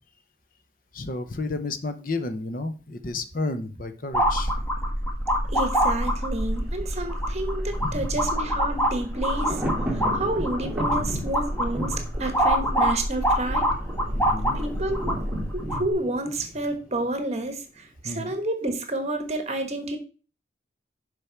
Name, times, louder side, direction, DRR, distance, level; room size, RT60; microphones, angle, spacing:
voice 1, 0.9-4.5 7.8-8.3 10.9-11.3 14.1-14.6 18.0-18.3, left 2 dB, 50° left, 9 dB, 0.8 m, -32 dB
sound 1, 4.1-15.9, equal, 15° left, 1.8 m, -25 dB
voice 2, 5.5-9.6 9.9-13.7 14.5-20.0, right 2 dB, 40° right, 6 dB, 1.2 m, -30 dB
Thunder, 6.5-17.4 17.7-17.8, equal, 5° right, 2.2 m, -36 dB
6.8 x 5.2 x 4.5 m, 0.36 s
head